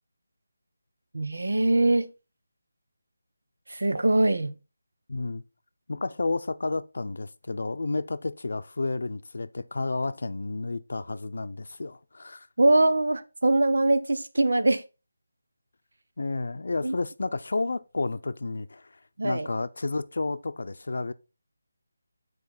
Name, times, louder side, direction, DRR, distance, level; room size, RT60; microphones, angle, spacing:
voice 1, 1.1-2.1 3.7-4.5 12.6-14.8 16.8-17.0 19.2-19.5, right 2 dB, 75° right, 1.0 m, -22 dB
voice 2, 5.1-5.4 5.9-12.5 16.2-21.1, left 3 dB, 65° left, 0.6 m, -31 dB
9.4 x 4.6 x 4.2 m
figure-of-eight pair, 165°, 0 cm